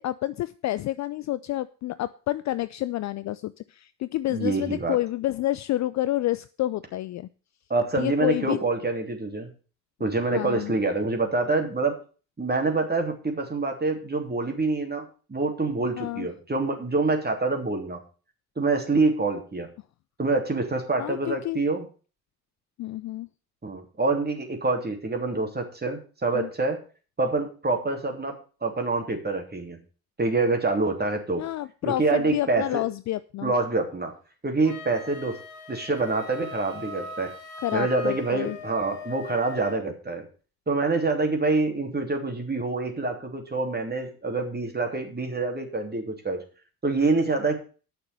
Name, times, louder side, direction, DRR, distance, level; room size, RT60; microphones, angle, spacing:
voice 1, 0.0-7.3 8.0-8.6 10.3-10.7 16.0-16.3 21.0-21.6 22.8-23.3 26.3-26.5 31.4-33.5 37.6-38.6, left 15 dB, 40° left, 15 dB, 0.5 m, -29 dB
voice 2, 4.3-5.0 7.7-9.5 10.0-12.0 12.4-18.0 18.6-19.7 20.2-21.9 23.6-26.8 27.2-29.8 30.2-31.4 31.8-32.8 33.4-34.1 34.4-35.4 35.7-37.3 37.7-40.3 40.7-46.4 46.8-47.6, right 3 dB, 20° right, 3 dB, 3.1 m, -26 dB
Wind instrument woodwind instrument, 34.6-39.8, left 3 dB, 65° left, 2.7 m, -40 dB
9.7 x 6.6 x 6.7 m, 0.37 s
figure-of-eight pair, 50°, 46 cm